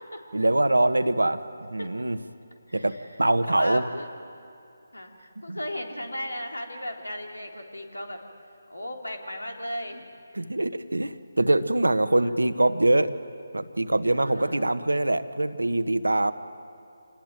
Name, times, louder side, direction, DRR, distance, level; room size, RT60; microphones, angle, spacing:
voice 1, 0.3-1.4 1.7-2.2 2.7-3.8 5.5-5.6 10.3-13.1 13.5-16.3, right 1 dB, 85° right, 11 dB, 1.3 m, -23 dB
voice 2, 2.7-3.1 3.4-4.1 4.9-8.2 8.7-10.1 12.1-12.3 14.1-14.7, left 1 dB, 85° left, 3 dB, 3.7 m, -36 dB
27.0 x 19.5 x 9.1 m, 2.7 s
figure-of-eight pair, 155°, 0 cm